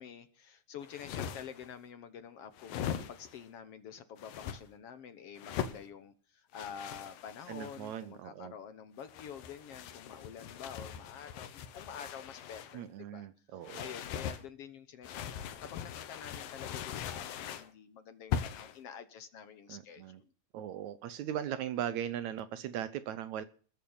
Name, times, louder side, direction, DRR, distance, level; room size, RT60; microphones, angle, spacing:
voice 1, 0.0-12.9 13.1-20.3, left 7 dB, 65° left, 1.5 m, -48 dB
sound 1, 0.8-1.7 2.6-3.4 4.2-4.6 5.4-5.8 6.5-8.0 9.0-12.8 13.6-14.4 15.0-17.7 18.3-18.8, left 9 dB, 90° left, 3.0 m, -40 dB
voice 2, 7.5-8.5 12.7-13.8 19.7-20.2 20.5-23.4, right 10 dB, 70° right, 1.9 m, -39 dB
21.0 x 9.3 x 7.1 m
omnidirectional pair, 3.9 m